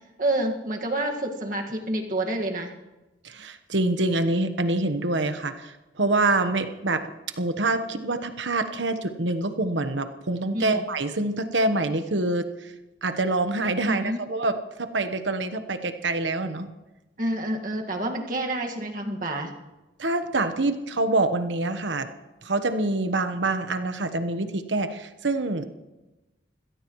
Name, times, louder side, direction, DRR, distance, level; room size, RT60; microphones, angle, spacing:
voice 1, 0.2-2.7 10.5-10.9 13.8-14.2 17.2-19.5, right 1 dB, 45° right, 1 dB, 1.9 m, -28 dB
voice 2, 3.2-7.1 7.4-12.5 13.0-16.7 20.0-22.1 22.4-25.7, right 2 dB, 85° right, 8 dB, 1.2 m, -26 dB
25.0 x 17.0 x 3.2 m, 1.1 s
head